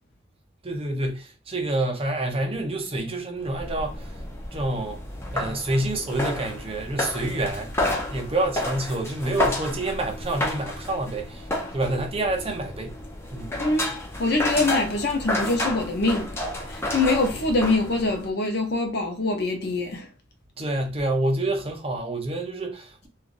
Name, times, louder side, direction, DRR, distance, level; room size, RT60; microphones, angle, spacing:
voice 1, 0.6-4.1 4.5-5.0 5.3-7.7 8.1-11.5 11.7-13.0 13.3-13.6 20.6-23.1, right 2 dB, 30° right, 0.7 m, -28 dB
sound 1, 3.4-18.3, left 1 dB, 15° left, 0.6 m, -31 dB
voice 2, 13.6-16.4 16.7-20.1, left 2 dB, 60° left, 0.7 m, -24 dB
3.1 x 2.4 x 2.5 m
head